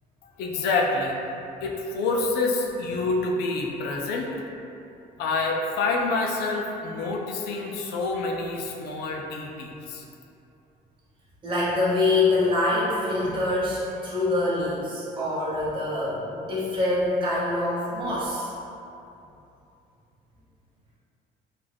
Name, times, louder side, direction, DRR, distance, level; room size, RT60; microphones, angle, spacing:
voice 1, 0.4-4.4 4.7-4.8 5.2-10.0, left 3 dB, 70° left, 0 dB, 0.4 m, -27 dB
voice 2, 11.4-18.5, left 2 dB, 30° right, -9 dB, 0.8 m, -25 dB
2.4 x 2.1 x 3.3 m, 2.8 s
cardioid pair, 110°, 17 cm